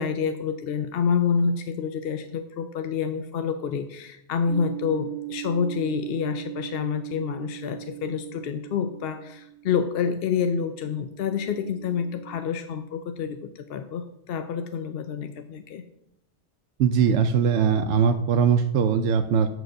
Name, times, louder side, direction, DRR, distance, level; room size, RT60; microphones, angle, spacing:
voice 1, 0.0-15.8, left 6 dB, 60° left, 9 dB, 0.7 m, -28 dB
sound 1, 4.5-12.3, right 15 dB, 10° left, 2.3 m, -39 dB
voice 2, 16.8-19.5, right 6 dB, 70° right, 6 dB, 0.8 m, -21 dB
7.9 x 4.8 x 6.3 m, 0.79 s
omnidirectional pair, 1.3 m